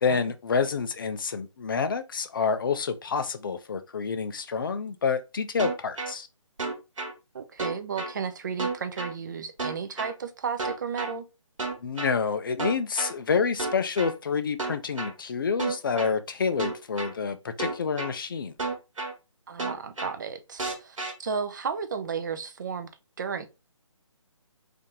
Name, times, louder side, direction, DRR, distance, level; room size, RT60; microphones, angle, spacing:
voice 1, 0.0-6.3 11.8-18.5, left 5 dB, 40° left, 0.5 m, -28 dB
sound 1, 5.6-6.1 6.6-7.1 7.6-8.1 8.6-9.1 9.6-10.1 10.6-11.1 11.6-12.1 12.6-13.1 13.6-14.1 14.6-15.1 15.6-16.1 16.6-17.1 17.6-18.1 18.6-19.1 19.6-20.1 20.6-21.1, right 3 dB, 75° right, 1.5 m, -31 dB
voice 2, 7.3-11.3 19.5-22.9 23.2-23.5, right 6 dB, 35° right, 0.5 m, -33 dB
3.4 x 2.8 x 3.6 m
hypercardioid pair, 160°, 17 cm